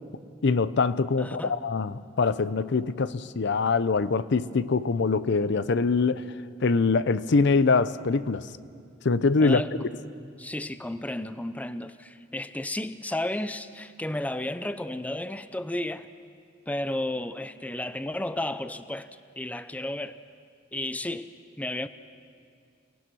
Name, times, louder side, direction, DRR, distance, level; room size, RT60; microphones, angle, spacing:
voice 1, 0.4-6.2 6.6-8.4 9.0-9.6, left 4 dB, 60° left, 15 dB, 0.6 m, -23 dB
voice 2, 1.2-1.6 9.4-9.7 10.4-16.1 16.7-19.1 19.4-20.2 20.7-21.3 21.6-21.9, left 1 dB, 10° left, 12 dB, 0.5 m, -32 dB
29.5 x 19.0 x 6.1 m, 2.2 s
head